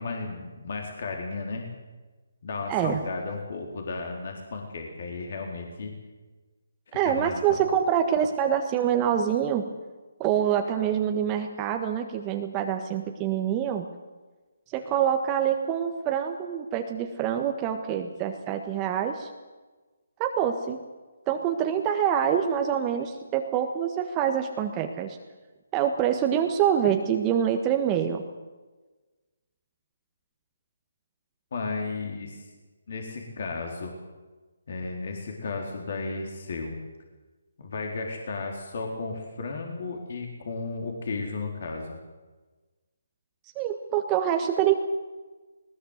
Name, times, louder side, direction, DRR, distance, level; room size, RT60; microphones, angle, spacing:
voice 1, 0.0-1.7 2.4-5.9 6.9-7.6 31.5-32.4 32.9-33.9 34.7-36.8 37.6-42.0, left 3 dB, 55° left, 2 dB, 4.0 m, -34 dB
voice 2, 2.7-3.0 6.9-9.7 10.2-13.9 14.7-19.3 20.2-20.8 21.3-25.2 25.7-28.2 43.5-44.7, right 9 dB, 20° right, 4 dB, 1.5 m, -25 dB
20.5 x 20.0 x 8.2 m, 1.3 s
figure-of-eight pair, 150°, 0 cm